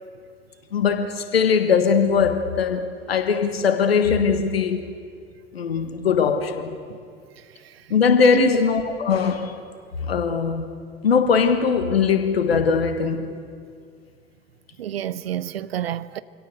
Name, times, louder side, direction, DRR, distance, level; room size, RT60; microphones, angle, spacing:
voice 1, 0.7-4.9 5.5-6.8 7.9-9.5 10.1-10.6 11.0-13.3, left 6 dB, 75° left, 1.5 m, -20 dB
voice 2, 14.8-16.2, right 11 dB, 75° right, 0.7 m, -28 dB
25.5 x 17.5 x 8.1 m
figure-of-eight pair, 65°, 31 cm